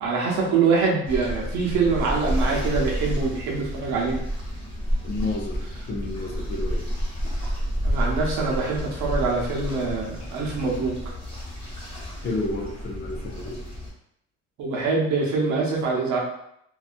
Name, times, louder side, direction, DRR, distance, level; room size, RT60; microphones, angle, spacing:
voice 1, 0.0-4.2 7.8-11.0 14.6-16.2, right 4 dB, 70° right, -3 dB, 0.8 m, -24 dB
sound 1, 1.1-13.9, equal, 20° left, 0.9 m, -30 dB
voice 2, 5.0-6.9 12.2-13.6, left 2 dB, 35° left, 0 dB, 0.4 m, -31 dB
2.6 x 2.3 x 2.4 m, 0.74 s
cardioid pair, 175°, 29 cm